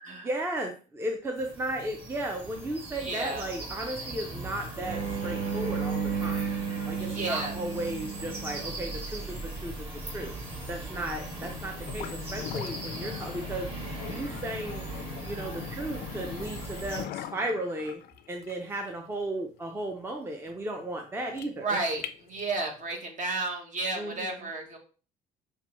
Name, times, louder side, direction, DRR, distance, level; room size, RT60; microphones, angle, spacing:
voice 1, 0.1-6.4 6.9-10.3 10.7-13.7 14.0-14.9 15.2-18.0 18.3-21.8 23.9-24.5, right 1 dB, 15° right, 2 dB, 0.5 m, -35 dB
sound 1, 1.4-17.0, right 1 dB, 30° right, 2.0 m, -39 dB
voice 2, 3.0-3.5 7.0-7.5 21.6-24.8, right 3 dB, 45° right, 2 dB, 1.2 m, -32 dB
sound 2, 4.8-9.4 12.7-13.2, right 6 dB, 75° right, 0.8 m, -34 dB
sound 3, 11.9-22.8, left 11 dB, 70° left, 0.4 m, -42 dB
5.6 x 2.3 x 3.0 m, 0.37 s
cardioid pair, 110°, 17 cm